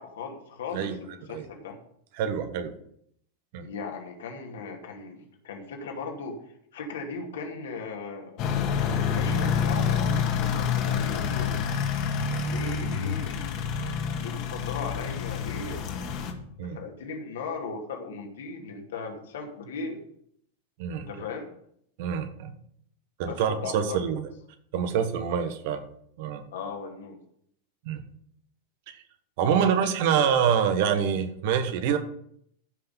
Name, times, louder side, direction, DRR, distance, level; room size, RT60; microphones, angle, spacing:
voice 1, 0.0-1.8 3.6-6.4 6.7-8.5 9.0-11.6 12.2-13.7 14.2-15.9 16.7-20.0 21.0-21.5 23.2-24.0 26.5-27.2 29.5-30.2, left 4 dB, 65° left, 2 dB, 2.5 m, -37 dB
voice 2, 2.2-2.7 3.5-3.7 16.6-16.8 20.8-21.0 22.0-22.5 23.2-24.2 24.7-25.8 26.2-26.4 27.8-28.0 29.4-32.0, right 7 dB, 55° right, 8 dB, 1.5 m, -26 dB
sound 1, 8.4-16.3, left 6 dB, 45° left, 1.9 m, -28 dB
15.0 x 5.9 x 5.5 m, 0.68 s
figure-of-eight pair, 90°, 0 cm